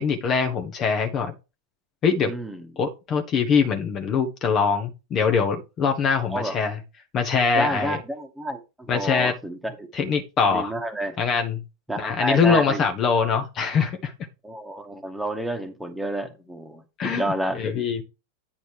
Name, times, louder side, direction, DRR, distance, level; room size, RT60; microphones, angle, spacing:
voice 1, 0.0-1.3 2.0-2.3 2.8-6.8 7.1-8.0 8.9-9.3 9.9-10.7 11.2-11.6 12.0-14.1 17.0-17.2 17.5-18.0, left 5 dB, 30° left, 5 dB, 1.2 m, -23 dB
voice 2, 2.2-2.7 6.3-6.6 7.5-9.9 10.5-11.2 11.9-12.8 14.4-17.8, right 1 dB, 5° right, 5 dB, 1.6 m, -30 dB
9.4 x 4.1 x 4.7 m, 0.27 s
figure-of-eight pair, 90°, 0 cm